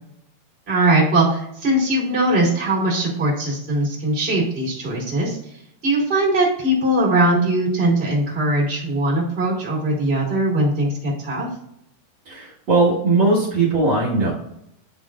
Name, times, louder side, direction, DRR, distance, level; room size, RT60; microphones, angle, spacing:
voice 1, 0.7-5.4 5.8-11.5, right 1 dB, 20° right, -5 dB, 1.8 m, -20 dB
voice 2, 12.2-14.3, right 3 dB, 60° right, -7 dB, 1.2 m, -19 dB
10.5 x 3.8 x 2.4 m, 0.76 s
omnidirectional pair, 5.0 m